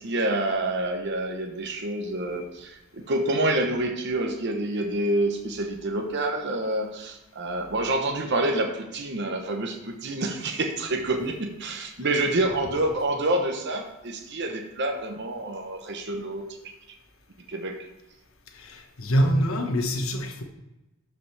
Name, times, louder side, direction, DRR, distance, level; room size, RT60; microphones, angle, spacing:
voice 1, 0.0-16.4 17.5-17.8, right 1 dB, 55° right, 3 dB, 0.9 m, -27 dB
voice 2, 18.5-20.4, equal, 75° left, 4 dB, 1.2 m, -25 dB
12.5 x 5.1 x 3.3 m, 0.97 s
head